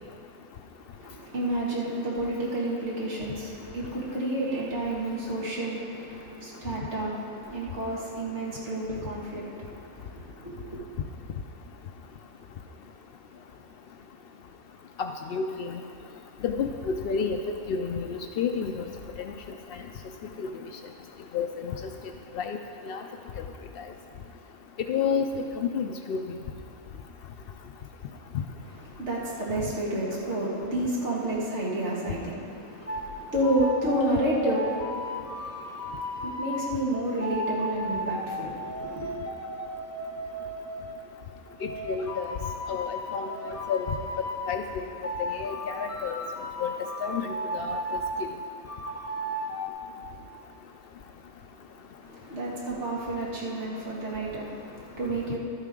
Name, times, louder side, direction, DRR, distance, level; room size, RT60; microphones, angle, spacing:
voice 1, 1.0-10.8 28.9-39.1 52.0-55.4, right 1 dB, 50° right, -5 dB, 2.1 m, -30 dB
voice 2, 15.0-15.8 16.4-18.8 20.4-20.5 21.3-21.7 22.3-22.6 22.9-23.0 24.9-25.3 25.6-26.2 41.6-42.4 42.7-43.3 43.7-43.9 44.5-44.8 45.3-46.1 46.6-46.7 47.0-47.8, left 6 dB, 85° left, 5 dB, 0.5 m, -30 dB
sound 1, 32.9-33.1 33.4-36.7 37.2-40.9 41.6-44.6 45.0-48.2 48.7-49.7, equal, 15° left, 0.6 m, -35 dB
12.5 x 9.8 x 3.7 m, 2.7 s
omnidirectional pair, 1.5 m